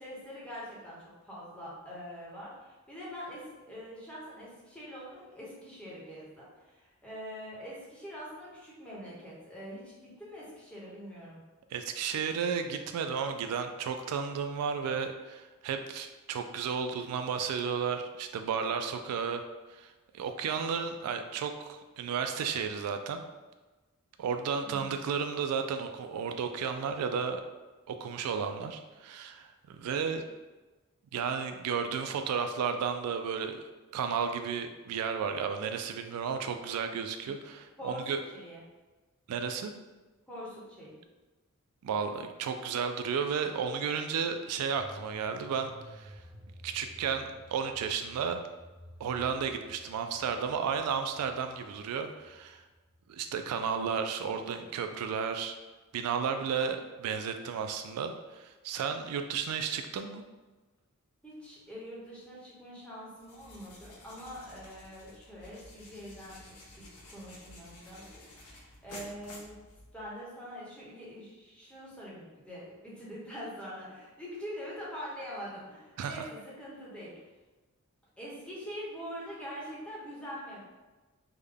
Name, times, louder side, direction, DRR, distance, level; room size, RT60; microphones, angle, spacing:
voice 1, 0.0-11.4 24.6-24.9 37.2-37.4 37.8-38.6 40.3-41.0 61.2-69.6 69.9-77.1 78.2-80.6, equal, 5° left, -7 dB, 0.9 m, -44 dB
voice 2, 11.7-19.4 19.7-23.2 24.2-27.4 27.9-30.2 31.1-33.6 33.9-38.2 39.3-39.7 41.8-46.2 46.6-48.4 49.0-52.6 53.1-55.6 55.9-60.2 76.0-76.3, right 6 dB, 85° right, 11 dB, 0.3 m, -33 dB
sound 1, 44.8-54.6 54.9-55.0, equal, 40° right, 1.0 m, -53 dB
sound 2, 63.2-70.2, left 1 dB, 85° left, 0.7 m, -52 dB
3.5 x 2.2 x 3.4 m, 1.2 s
head